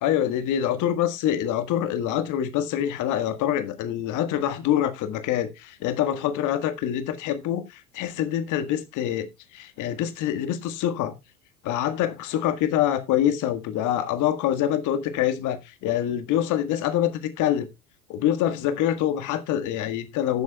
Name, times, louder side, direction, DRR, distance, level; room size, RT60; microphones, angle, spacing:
voice 1, 0.0-11.2 11.6-17.7 18.1-20.4, left 11 dB, 40° left, 1.6 m, -25 dB
18.0 x 7.2 x 2.3 m
figure-of-eight pair, 75°, 44 cm